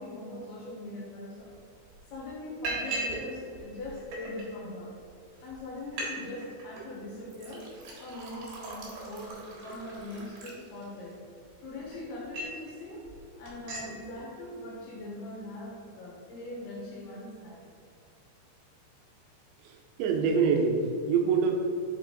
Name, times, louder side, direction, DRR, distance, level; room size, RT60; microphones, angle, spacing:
voice 1, 0.0-1.5 2.1-4.9 5.4-7.7 8.0-11.2 11.6-13.1 13.4-17.6, left 1 dB, 70° left, -4 dB, 2.9 m, -41 dB
Liquid, 1.5-1.6 1.9-2.2 2.6-3.2 3.5-4.4 5.1-5.2 5.5-5.6 5.8-6.1 6.4-6.8 7.3-11.1 11.6-12.6 13.0-13.2 13.5-13.9, right 2 dB, 65° right, 2.7 m, -38 dB
voice 2, 19.6-21.5, right 5 dB, 80° right, 1 dB, 2.9 m, -25 dB
7.0 x 4.4 x 3.8 m, 2.5 s
omnidirectional pair, 5.3 m